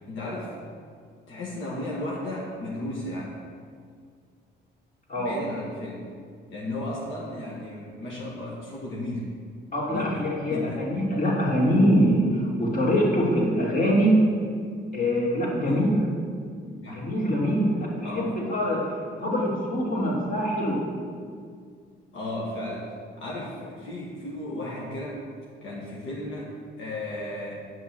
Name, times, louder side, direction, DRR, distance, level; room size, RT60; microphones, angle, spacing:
voice 1, 0.1-0.5 1.3-3.4 5.1-6.0 6.5-9.3 9.9-10.8 15.7-15.8 16.6-17.1 18.0-18.3 22.1-25.2 25.6-27.6, left 1 dB, 80° left, -4 dB, 1.7 m, -35 dB
voice 2, 9.7-14.2 14.9-16.0 16.9-20.8, equal, 45° left, -4 dB, 2.9 m, -24 dB
9.3 x 6.0 x 6.4 m, 2.1 s
cardioid pair, 90°, 20 cm